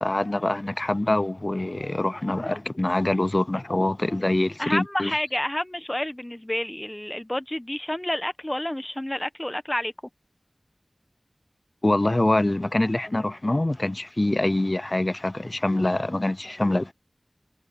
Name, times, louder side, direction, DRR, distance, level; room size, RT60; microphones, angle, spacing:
voice 1, 0.0-5.1 11.8-16.9, left 1 dB, 40° left, 0.5 m, -24 dB
voice 2, 4.6-9.9, left 1 dB, 20° left, 1.1 m, -29 dB
wide cardioid pair, 40°, 0 cm